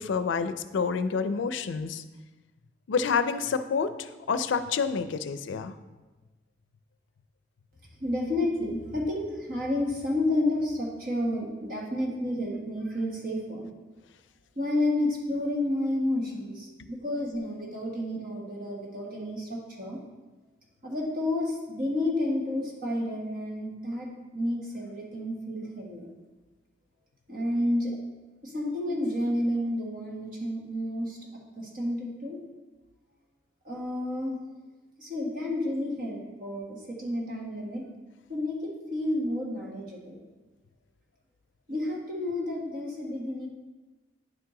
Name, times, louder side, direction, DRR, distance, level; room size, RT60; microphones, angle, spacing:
voice 1, 0.0-2.0 2.9-5.8 16.8-16.9, left 5 dB, 85° left, 11 dB, 0.4 m, -28 dB
voice 2, 8.0-13.7 14.6-20.0 20.8-26.1 27.3-27.9 28.4-32.4 33.6-34.4 35.0-37.9 38.3-40.2 41.7-43.5, left 1 dB, 50° right, -2 dB, 1.4 m, -30 dB
9.7 x 4.7 x 3.8 m, 1.2 s
head